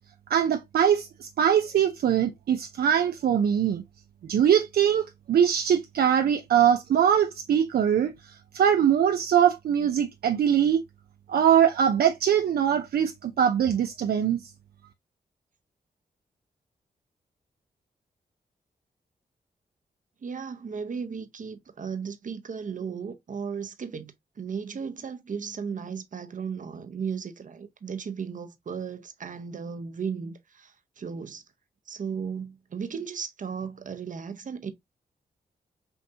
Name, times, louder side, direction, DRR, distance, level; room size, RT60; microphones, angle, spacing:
voice 1, 0.3-3.8 4.3-10.8 11.3-14.4, right 9 dB, 70° right, 0.5 m, -22 dB
voice 2, 20.2-31.4 31.9-34.7, right 6 dB, 55° right, 0.8 m, -35 dB
5.6 x 2.7 x 2.7 m
cardioid pair, 60°, 16 cm